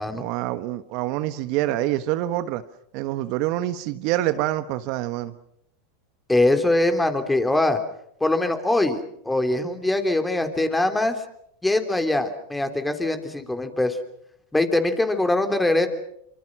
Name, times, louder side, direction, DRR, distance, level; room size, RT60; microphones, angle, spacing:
voice 1, 0.1-2.6 2.9-5.3, right 14 dB, 55° right, 12 dB, 1.2 m, -26 dB
voice 2, 6.3-7.8 8.2-11.2 11.6-14.0 14.5-15.9, left 2 dB, 10° left, 7 dB, 3.3 m, -22 dB
27.0 x 24.5 x 6.2 m, 0.74 s
hypercardioid pair, 95°, 0 cm